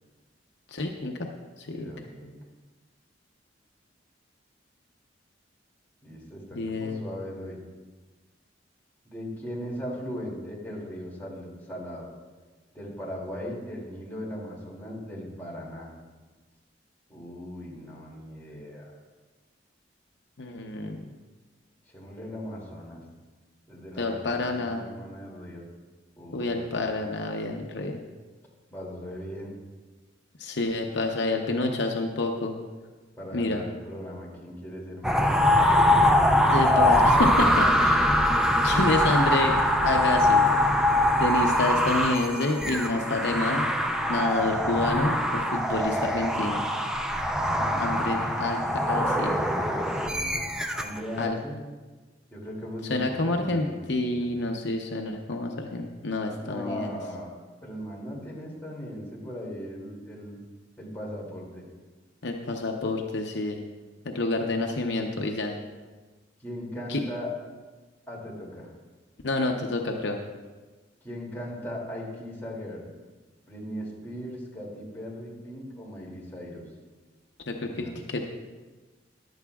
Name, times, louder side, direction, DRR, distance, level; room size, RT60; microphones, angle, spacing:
voice 1, 0.7-1.3 1.6-1.9 6.5-7.0 20.4-21.0 24.0-24.9 26.3-28.0 30.4-32.6 33.3-33.6 36.5-39.6 39.8-40.4 41.2-43.7 44.1-46.6 47.8-48.6 48.9-49.4 51.2-51.4 52.9-56.9 62.2-63.6 64.1-65.6 66.9-67.0 69.2-70.2 77.5-78.3, left 2 dB, 70° left, 2 dB, 0.8 m, -28 dB
voice 2, 1.7-2.3 6.0-7.6 9.0-12.1 12.7-15.9 17.1-19.0 21.9-23.0 23.7-25.6 26.2-27.0 28.7-29.5 33.2-35.6 47.5-48.4 49.6-50.5 50.7-51.5 52.3-54.3 56.4-57.3 57.6-60.4 60.8-61.6 66.4-67.3 68.1-68.7 71.0-72.9 73.5-76.6 77.6-78.0, equal, 10° left, -5 dB, 2.6 m, -38 dB
sound 1, 35.0-51.0, left 1 dB, 5° right, 0.5 m, -23 dB
14.5 x 11.0 x 2.4 m, 1.3 s
head